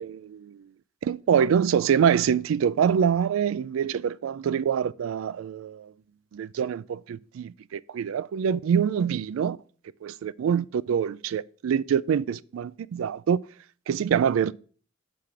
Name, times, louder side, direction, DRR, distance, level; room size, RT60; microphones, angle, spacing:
voice 1, 0.0-0.6 1.0-5.9 6.3-9.6 10.0-13.4 13.9-14.5, right 7 dB, 85° right, 0.3 m, -25 dB
5.7 x 4.9 x 6.0 m
head